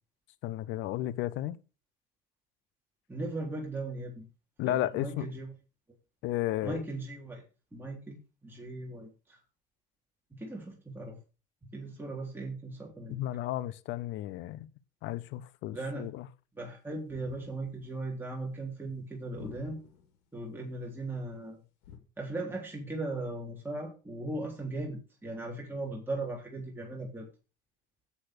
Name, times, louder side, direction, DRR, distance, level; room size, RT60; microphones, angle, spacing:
voice 1, 0.4-1.6 4.6-5.3 6.2-6.8 13.1-14.7 15.0-16.3, left 14 dB, 70° left, 0.9 m, -33 dB
voice 2, 3.1-4.3 4.7-5.5 6.6-7.4 7.7-8.2 8.4-9.4 10.3-11.2 11.7-13.2 15.7-16.1 16.6-19.8 20.3-21.6 22.2-27.3, right 2 dB, 10° right, 3.7 m, -38 dB
sound 1, 17.1-17.9 19.4-20.2 21.8-22.0, left 7 dB, 85° left, 2.6 m, -50 dB
8.5 x 8.3 x 6.5 m
supercardioid pair, 80°, 20 cm